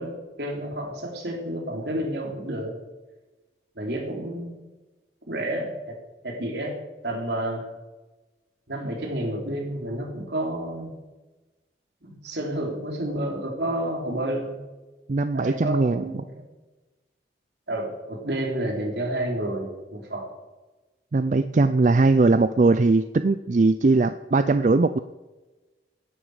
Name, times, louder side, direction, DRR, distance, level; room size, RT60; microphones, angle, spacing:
voice 1, 0.0-2.7 3.8-4.6 5.3-6.0 6.2-6.8 7.0-7.6 8.7-11.0 12.0-14.6 15.3-16.4 17.7-20.3, right 1 dB, 70° right, 1 dB, 3.5 m, -30 dB
voice 2, 15.1-16.0 21.1-25.0, right 3 dB, 45° right, 11 dB, 0.4 m, -20 dB
16.5 x 11.5 x 5.0 m, 1.2 s
head